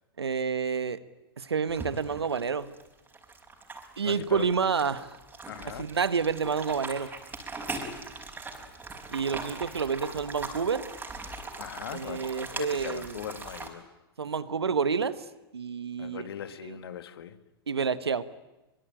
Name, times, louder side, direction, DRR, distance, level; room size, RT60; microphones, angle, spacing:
voice 1, 0.2-1.0 1.4-2.7 4.0-5.1 5.6-7.1 9.1-10.9 11.9-13.2 14.2-15.2 15.5-16.3 16.6-16.8 17.7-18.2, right 6 dB, 90° right, 1.4 m, -29 dB
sound 1, 1.7-13.7, right 3 dB, 15° right, 5.2 m, -40 dB
voice 2, 4.0-4.5 5.5-5.9 11.6-13.9 16.0-17.4, left 9 dB, 70° left, 2.0 m, -40 dB
24.0 x 23.0 x 9.0 m
hypercardioid pair, 105°, 13 cm